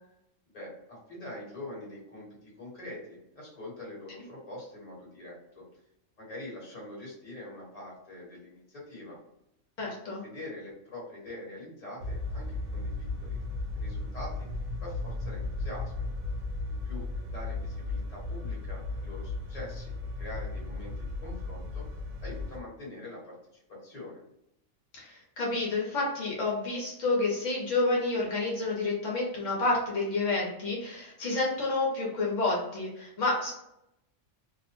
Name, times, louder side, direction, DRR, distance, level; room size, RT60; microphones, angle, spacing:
voice 1, 0.5-5.6 6.2-9.2 9.8-9.9 10.2-13.5 13.7-14.5 14.8-16.1 16.7-21.8 22.2-24.2, left 1 dB, 30° left, -5 dB, 1.1 m, -44 dB
voice 2, 9.8-10.2 24.9-33.5, left 3 dB, 75° left, -3 dB, 1.0 m, -29 dB
sound 1, 12.0-22.6, left 3 dB, 55° right, 0.5 m, -35 dB
2.6 x 2.0 x 2.9 m, 0.81 s
omnidirectional pair, 1.3 m